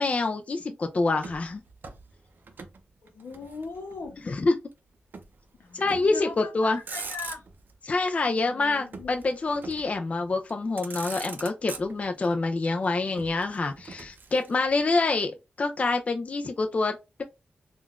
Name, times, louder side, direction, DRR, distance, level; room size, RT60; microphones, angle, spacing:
voice 1, 0.0-1.6 4.2-4.6 5.7-6.8 7.8-17.2, left 3 dB, 35° left, 0.3 m, -26 dB
Motor vehicle (road), 1.2-2.8 3.1-4.1 5.1-5.4 5.8-6.2 6.7-7.7 8.9-10.0 10.5-10.6 10.8-12.3 13.2-14.8, right 4 dB, 55° right, 0.5 m, -42 dB
voice 2, 3.0-4.2 5.6-7.4 8.4-9.2, left 4 dB, 85° left, 0.7 m, -39 dB
3.6 x 2.3 x 2.4 m
wide cardioid pair, 120°, 4 cm